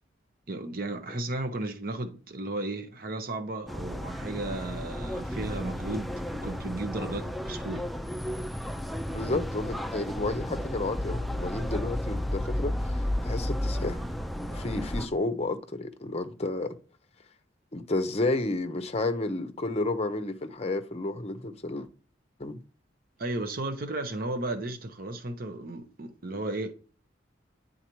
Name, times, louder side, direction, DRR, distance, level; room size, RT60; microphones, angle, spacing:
voice 1, 0.5-7.9 23.2-26.7, right 2 dB, 50° right, 0.8 m, -34 dB
sound 1, 3.7-15.1, left 1 dB, ahead, 0.4 m, -33 dB
voice 2, 9.1-14.0 14.5-16.8 17.7-21.9 22.4-22.6, left 2 dB, 35° left, 0.6 m, -31 dB
9.7 x 3.9 x 3.0 m
head